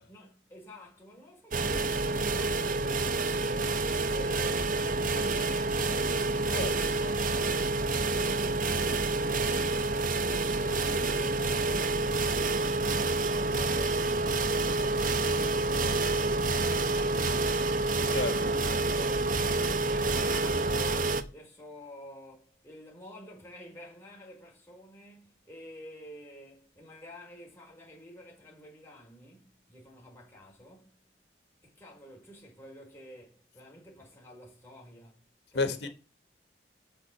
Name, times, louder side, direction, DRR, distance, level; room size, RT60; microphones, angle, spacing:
voice 1, 0.0-3.8 4.1-31.0 31.6-35.3 35.5-35.9, equal, 15° left, 4.5 m, -50 dB
sound 1, 1.5-21.2, right 3 dB, 45° right, 0.8 m, -28 dB
voice 2, 35.5-35.9, left 3 dB, 70° left, 1.8 m, -29 dB
6.6 x 6.6 x 7.5 m
head